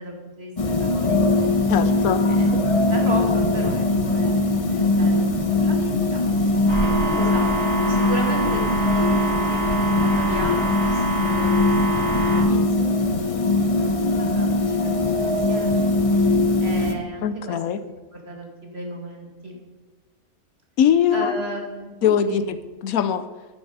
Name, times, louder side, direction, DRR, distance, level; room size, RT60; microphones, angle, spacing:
voice 1, 0.0-1.7 2.3-11.6 11.9-13.3 13.6-15.0 15.2-15.8 16.1-16.3 16.6-19.6 21.1-22.4, right 1 dB, 45° right, 0 dB, 2.4 m, -35 dB
sound 1, 0.6-16.9, left 2 dB, 30° left, 0.8 m, -21 dB
voice 2, 1.7-2.2 17.2-17.8 20.8-21.4 22.0-22.6 22.8-23.2, left 8 dB, 75° left, 12 dB, 1.1 m, -21 dB
sound 2, 6.7-12.4, right 3 dB, 65° right, 4.8 m, -27 dB
11.0 x 10.0 x 5.5 m, 1.3 s
omnidirectional pair, 1.5 m